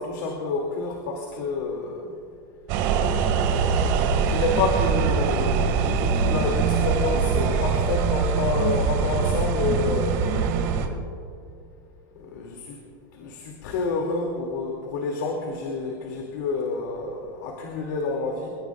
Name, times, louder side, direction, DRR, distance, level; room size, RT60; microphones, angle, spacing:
voice 1, 0.0-2.2 4.1-10.5 12.2-12.8 13.1-18.5, left 3 dB, 60° left, 0 dB, 2.6 m, -28 dB
sound 1, 2.7-10.9, right 6 dB, 40° right, 2.0 m, -23 dB
28.5 x 16.5 x 2.5 m, 2.3 s
supercardioid pair, 170°, 11 cm